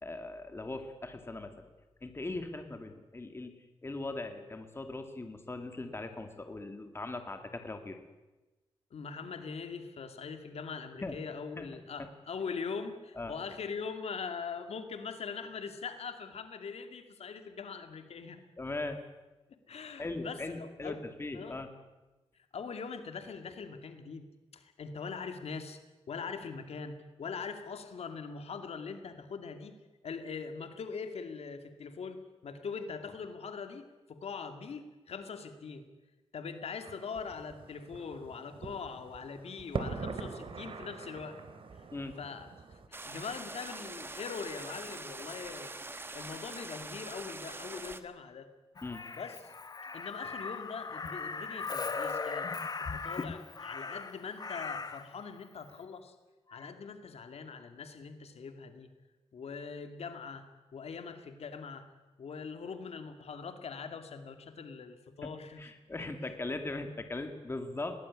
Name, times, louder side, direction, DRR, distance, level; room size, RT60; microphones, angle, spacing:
voice 1, 0.0-1.6 2.0-8.0 11.0-11.2 11.5-11.7 12.0-12.1 13.2-13.3 18.6-19.0 20.0-21.7 41.9-42.1 48.8-49.0 65.2-65.3 65.6-68.0, left 2 dB, 25° left, 7 dB, 2.2 m, -39 dB
voice 2, 8.9-18.4 19.7-21.0 21.3-21.6 22.5-24.3 24.5-25.8 26.1-29.7 30.0-33.8 34.1-35.9 36.3-41.4 42.2-45.7 46.1-48.5 49.1-49.4 49.9-52.5 52.8-56.1 56.5-58.9 59.3-60.4 60.7-61.9 62.2-65.7 66.0-66.1, left 5 dB, 90° left, 8 dB, 2.4 m, -42 dB
sound 1, 36.8-42.9, right 4 dB, 60° right, 2.6 m, -43 dB
sound 2, 42.9-48.0, right 2 dB, 20° right, 1.4 m, -44 dB
Crow, 48.8-55.1 56.5-56.7, left 4 dB, 40° left, 1.2 m, -38 dB
21.5 x 18.5 x 9.7 m, 1.1 s
wide cardioid pair, 155°, 10 cm